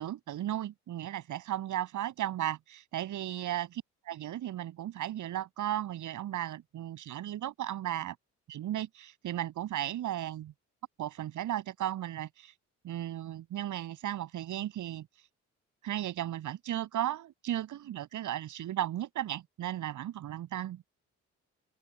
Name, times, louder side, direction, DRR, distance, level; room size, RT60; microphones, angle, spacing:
voice 1, 0.0-3.8 4.1-8.2 8.5-10.5 11.0-12.5 12.8-15.1 15.8-20.8, right 12 dB, 80° right, 7.7 m, -35 dB
open air
cardioid pair, 90°, 30 cm